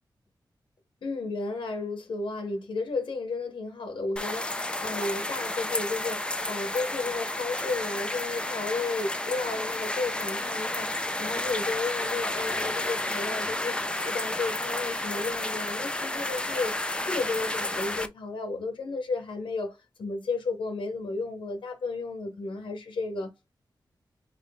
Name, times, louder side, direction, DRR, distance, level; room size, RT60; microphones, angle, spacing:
voice 1, 1.0-23.5, left 3 dB, 90° left, 0.9 m, -33 dB
sound 1, 4.2-18.1, left 1 dB, 10° left, 0.6 m, -31 dB
3.9 x 3.1 x 3.5 m
wide cardioid pair, 90°, 8 cm